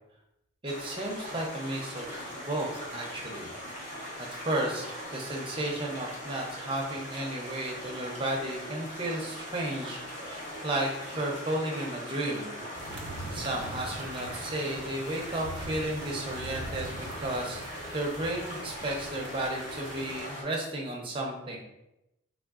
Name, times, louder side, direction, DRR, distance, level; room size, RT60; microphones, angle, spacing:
voice 1, 0.6-2.1 2.3-3.5 4.3-12.5 13.3-17.6 17.9-21.6, right 1 dB, 25° right, -1 dB, 0.6 m, -33 dB
sound 1, 0.7-20.4, equal, 35° left, 1.0 m, -41 dB
sound 2, 12.7-20.2, right 2 dB, 85° right, 0.6 m, -43 dB
3.5 x 3.5 x 2.4 m, 0.88 s
head